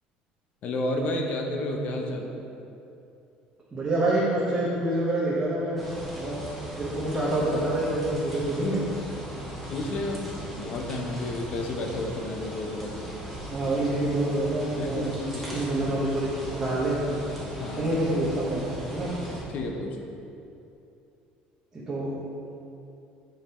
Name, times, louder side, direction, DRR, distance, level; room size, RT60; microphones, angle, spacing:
voice 1, 0.6-2.3 9.7-13.1 14.7-15.6 17.6-17.9 19.3-20.0, left 1 dB, 50° left, 2 dB, 0.9 m, -31 dB
voice 2, 3.7-5.8 6.1-6.3 6.8-8.8 13.5-15.1 15.5-17.0 17.8-19.1 21.7-22.1, right 1 dB, 15° right, -8 dB, 1.2 m, -27 dB
sound 1, 5.8-19.4, equal, ahead, 1.5 m, -38 dB
7.6 x 5.2 x 4.4 m, 2.7 s
cardioid pair, 160°, 3 cm